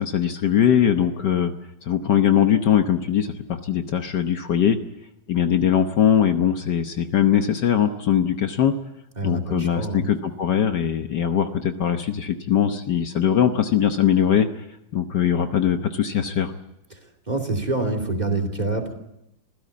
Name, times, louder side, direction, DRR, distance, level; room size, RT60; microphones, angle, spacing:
voice 1, 0.0-1.5 1.8-4.8 5.3-8.7 9.2-14.5 14.9-16.5, left 9 dB, 60° left, 7 dB, 1.5 m, -21 dB
voice 2, 9.2-10.1 16.9-17.0 17.3-18.9, right 2 dB, 20° right, 8 dB, 2.8 m, -26 dB
26.0 x 16.0 x 8.4 m, 0.88 s
omnidirectional pair, 2.2 m